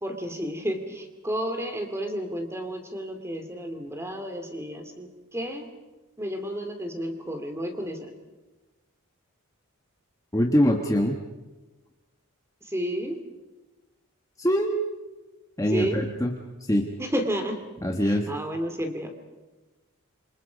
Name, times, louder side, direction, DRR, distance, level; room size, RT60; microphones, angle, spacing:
voice 1, 0.0-5.7 6.2-8.1 12.6-13.2 15.7-16.0 17.0-17.6 18.0-19.1, equal, 10° right, 6 dB, 2.7 m, -31 dB
voice 2, 10.3-11.2 14.4-14.8 15.6-16.3 16.6-16.9 17.8-18.3, equal, 15° left, 2 dB, 1.4 m, -23 dB
27.5 x 25.5 x 5.3 m, 1.2 s
head